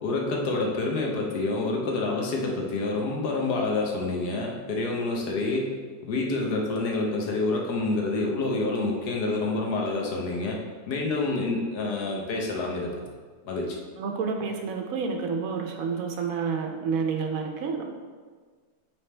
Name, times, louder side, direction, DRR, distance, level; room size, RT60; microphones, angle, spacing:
voice 1, 0.0-5.7 6.0-10.6 10.8-12.9 13.4-13.8, left 3 dB, 75° left, 0 dB, 1.4 m, -27 dB
voice 2, 14.0-17.8, right 5 dB, 65° right, 3 dB, 1.1 m, -29 dB
8.6 x 3.5 x 3.3 m, 1.5 s
omnidirectional pair, 1.7 m